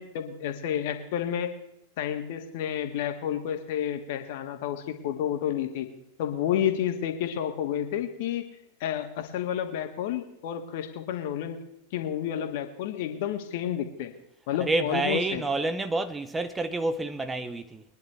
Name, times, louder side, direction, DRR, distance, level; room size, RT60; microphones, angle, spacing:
voice 1, 0.0-1.5 2.0-5.9 6.2-8.4 8.8-11.6 11.9-14.1 14.5-15.4, left 10 dB, 55° left, 1.8 m, -30 dB
voice 2, 14.6-17.8, right 2 dB, 15° right, 0.8 m, -28 dB
22.5 x 10.5 x 3.4 m
figure-of-eight pair, 90°, 0 cm